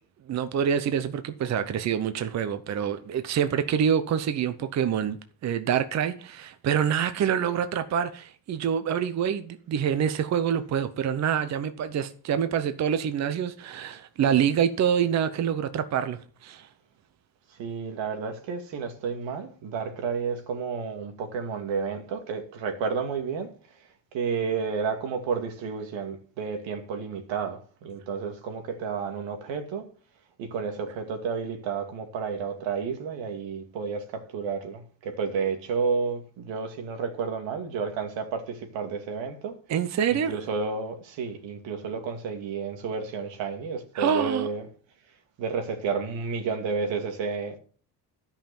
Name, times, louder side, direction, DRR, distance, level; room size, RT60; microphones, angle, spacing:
voice 1, 0.3-16.7 39.7-40.3 43.9-44.5, right 8 dB, 40° right, 0.7 m, -26 dB
voice 2, 17.5-23.8 24.1-29.9 30.4-39.6 40.1-44.7 45.4-47.6, right 5 dB, 90° right, 2.4 m, -31 dB
13.0 x 5.8 x 7.0 m
cardioid pair, 175°, 44 cm